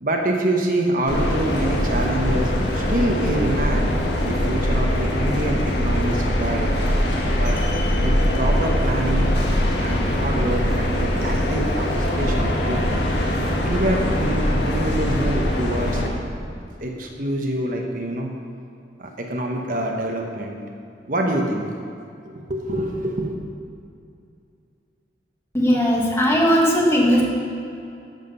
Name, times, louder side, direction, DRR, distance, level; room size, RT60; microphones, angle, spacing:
voice 1, 0.0-3.9 4.2-6.7 7.4-7.6 8.0-9.3 9.8-13.0 13.6-16.2 16.8-18.4 19.0-20.6 21.1-21.8 22.2-23.4, right 1 dB, 50° right, 1 dB, 1.1 m, -26 dB
sound 1, 1.1-16.1, equal, 75° left, 1.5 m, -22 dB
voice 2, 25.5-27.2, equal, 15° left, -3 dB, 1.6 m, -18 dB
11.5 x 7.4 x 5.5 m, 2.5 s
head